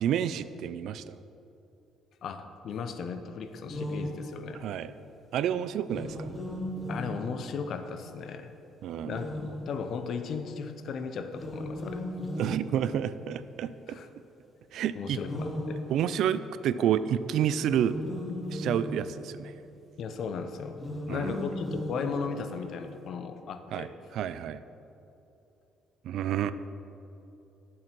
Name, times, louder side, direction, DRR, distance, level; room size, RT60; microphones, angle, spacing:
voice 1, 0.0-1.1 4.6-4.9 5.3-6.3 8.8-9.2 12.4-14.0 14.7-15.2 15.9-18.0 18.5-19.5 21.1-21.4 23.7-23.9 24.1-24.6 26.0-26.5, right 9 dB, 65° right, 14 dB, 0.4 m, -29 dB
voice 2, 2.2-4.6 6.9-8.5 9.0-12.0 13.9-14.1 14.9-15.8 20.0-20.8 21.1-23.9, left 5 dB, 50° left, 8 dB, 0.7 m, -36 dB
sound 1, 3.6-4.7 5.8-7.8 9.0-10.1 11.3-13.4 15.2-16.6 17.5-19.5 20.7-22.7, left 1 dB, 15° left, 1.5 m, -37 dB
10.5 x 7.5 x 6.1 m, 2.8 s
cardioid pair, 150°, 0 cm